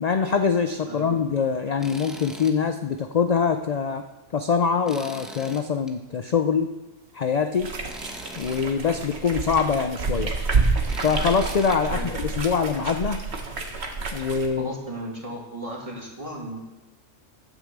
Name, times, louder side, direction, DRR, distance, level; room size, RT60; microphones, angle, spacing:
voice 1, 0.0-4.0 4.3-6.7 7.1-7.7 8.4-10.3 11.0-13.3 14.1-14.7, left 6 dB, 50° left, 7 dB, 0.5 m, -24 dB
voice 2, 0.9-1.2 11.9-12.3 14.6-16.6, right 1 dB, 25° right, -1 dB, 2.4 m, -35 dB
Tools, 1.8-2.6 3.0-3.1 4.9-5.9 7.9-8.7 10.9-11.8, equal, ahead, 0.9 m, -41 dB
sound 1, 7.5-14.5, right 4 dB, 55° right, 1.5 m, -28 dB
9.9 x 8.6 x 7.3 m, 1.1 s
omnidirectional pair, 1.3 m